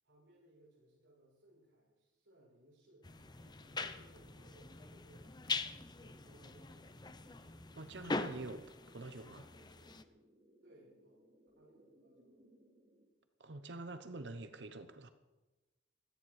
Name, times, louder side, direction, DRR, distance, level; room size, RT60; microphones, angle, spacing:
voice 1, 0.0-3.1 3.4-7.0 10.6-11.3 11.6-12.3, right 1 dB, 90° right, 7.0 m, -65 dB
sound 1, 3.0-10.0, left 3 dB, 25° left, 0.7 m, -43 dB
sound 2, 3.1-13.1, equal, 35° right, 3.8 m, -67 dB
voice 2, 7.7-9.5 13.4-15.1, right 2 dB, 65° right, 0.9 m, -47 dB
17.0 x 13.5 x 4.9 m
head